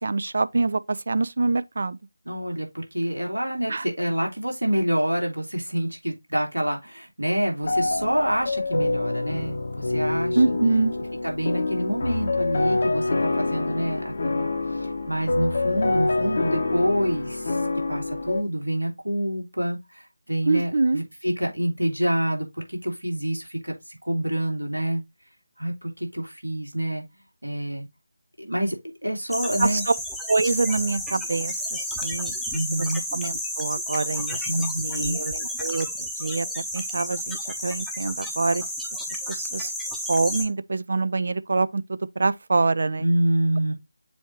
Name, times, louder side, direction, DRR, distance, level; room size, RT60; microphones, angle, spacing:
voice 1, 0.0-2.0 3.7-3.8 10.4-10.9 20.5-21.0 29.6-29.8 30.3-32.3 32.7-32.9 33.1-34.5 34.8-35.9 36.2-37.4 37.6-38.6 39.3-39.7 40.1-43.1, right 3 dB, 50° right, 0.5 m, -25 dB
voice 2, 2.3-10.5 11.2-17.6 17.9-20.0 20.3-23.7 24.0-25.0 25.6-27.0 27.4-27.9 28.4-29.8 32.5-33.0 34.5-35.2 43.0-43.7, right 1 dB, 85° right, 2.7 m, -27 dB
sound 1, 7.6-18.4, left 2 dB, 45° left, 0.9 m, -26 dB
sound 2, 29.3-40.4, equal, ahead, 0.8 m, -31 dB
7.1 x 2.8 x 4.8 m
figure-of-eight pair, 160°, 0 cm